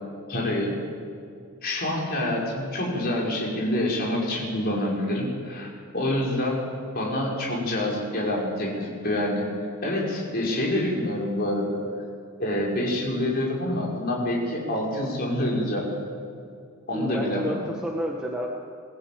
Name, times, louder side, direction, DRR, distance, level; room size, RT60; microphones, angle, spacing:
voice 1, 0.3-0.8 1.6-6.6 6.9-9.5 9.8-11.7 12.4-15.9 16.9-17.6, left 1 dB, 45° left, -3 dB, 5.4 m, -27 dB
voice 2, 16.9-18.5, equal, 5° right, -3 dB, 1.7 m, -30 dB
23.0 x 15.0 x 8.7 m, 2.4 s
head